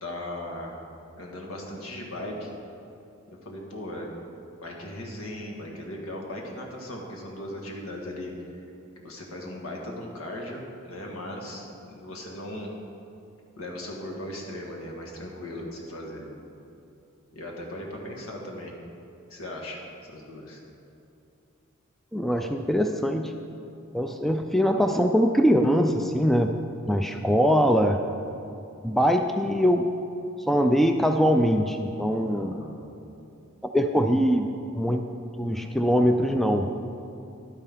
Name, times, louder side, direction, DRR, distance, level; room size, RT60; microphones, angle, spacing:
voice 1, 0.0-0.8 1.2-2.5 3.3-4.1 4.6-8.3 9.0-12.7 13.6-16.3 17.3-18.7 19.3-19.8 20.1-20.6 32.3-32.8, left 1 dB, 75° left, 0 dB, 1.6 m, -38 dB
voice 2, 22.1-23.3 23.9-26.6 26.9-28.0 28.8-29.9 30.5-32.6 33.6-34.5 34.7-35.1 35.4-36.7, equal, ahead, 5 dB, 0.3 m, -22 dB
11.5 x 9.9 x 3.6 m, 2.7 s
head